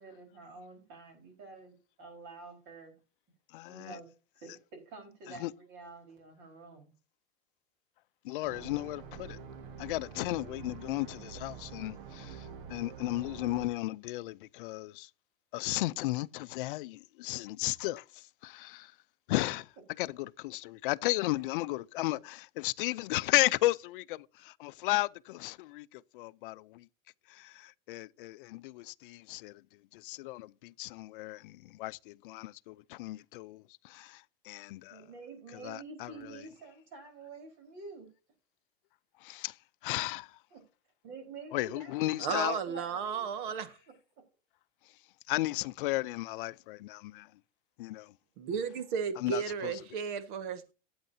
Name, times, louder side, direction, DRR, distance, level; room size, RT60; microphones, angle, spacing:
voice 1, 0.0-2.9 3.7-4.1 4.3-6.9 34.9-38.1 40.5-40.6 41.0-43.6 43.9-44.2, right 4 dB, 40° right, 4.5 m, -49 dB
voice 2, 3.5-4.0 5.3-5.5 8.2-9.4 9.8-15.1 15.5-18.9 19.3-19.6 20.0-26.9 27.3-29.6 29.9-35.0 35.5-36.4 39.2-39.6 39.8-40.4 41.5-42.6 45.3-47.3 47.8-48.1 49.2-49.7, left 18 dB, 60° left, 0.6 m, -34 dB
sound 1, 8.4-13.7, right 7 dB, 70° right, 1.7 m, -46 dB
voice 3, 42.2-43.7 48.4-50.7, right 7 dB, 55° right, 1.7 m, -34 dB
14.5 x 8.8 x 2.7 m
supercardioid pair, 165°, 29 cm